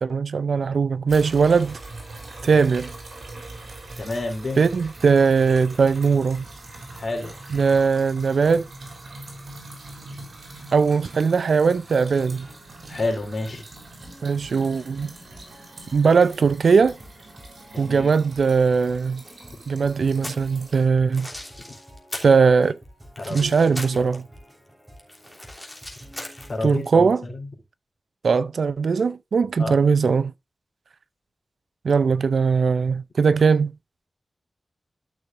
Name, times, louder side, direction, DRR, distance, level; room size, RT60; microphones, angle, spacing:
voice 1, 0.0-1.8 2.4-2.9 4.6-6.4 7.5-8.7 10.7-12.5 14.2-15.1 15.9-17.0 17.8-19.2 19.7-21.3 22.2-22.8 23.3-24.2 26.6-27.2 28.2-30.3 31.8-33.7, right 5 dB, 85° right, 0.5 m, -20 dB
sound 1, 1.1-20.8, right 2 dB, 65° right, 4.1 m, -42 dB
voice 2, 4.0-4.6 6.9-7.3 12.9-13.6 17.7-18.1 21.6-21.7 23.2-24.0 26.5-27.5 29.6-29.8, left 2 dB, 55° left, 3.5 m, -30 dB
sound 2, 12.2-26.8, equal, 15° right, 4.5 m, -50 dB
sound 3, 20.0-20.5 21.0-22.4 22.6-24.4 24.7-26.9, left 1 dB, 10° left, 3.0 m, -38 dB
13.0 x 6.2 x 2.6 m
wide cardioid pair, 80°, 0 cm